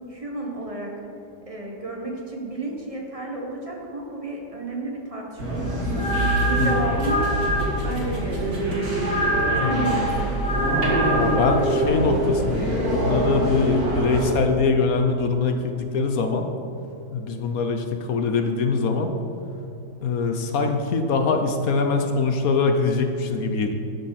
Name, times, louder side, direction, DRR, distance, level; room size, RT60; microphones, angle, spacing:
voice 1, 0.1-0.9 1.5-7.3 7.5-8.7 9.5-10.3, right 2 dB, 20° right, -1 dB, 1.5 m, -32 dB
sound 1, 5.4-14.3, right 1 dB, 60° right, 2.5 m, -25 dB
sound 2, 5.7-11.9, equal, 35° left, 2.8 m, -26 dB
voice 2, 11.1-16.5 17.1-19.1 20.0-23.7, left 4 dB, 60° left, 5 dB, 1.1 m, -23 dB
12.5 x 10.0 x 4.2 m, 2.7 s
omnidirectional pair, 1.9 m